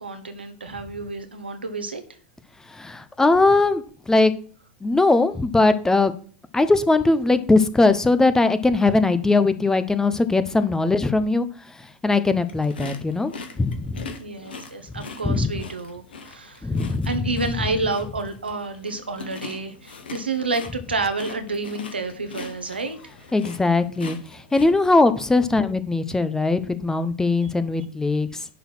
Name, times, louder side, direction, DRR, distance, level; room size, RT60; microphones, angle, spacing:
voice 1, 0.0-2.0 14.2-23.0, right 3 dB, 85° right, 8 dB, 1.3 m, -29 dB
voice 2, 2.7-4.3 4.8-6.1 6.5-11.5 12.0-14.1 15.2-15.5 16.6-17.1 23.3-28.5, left 3 dB, 10° left, 12 dB, 0.8 m, -20 dB
sound 1, 12.4-25.1, left 4 dB, 75° left, 1.5 m, -41 dB
10.5 x 4.1 x 6.1 m, 0.43 s
figure-of-eight pair, 85°, 5 cm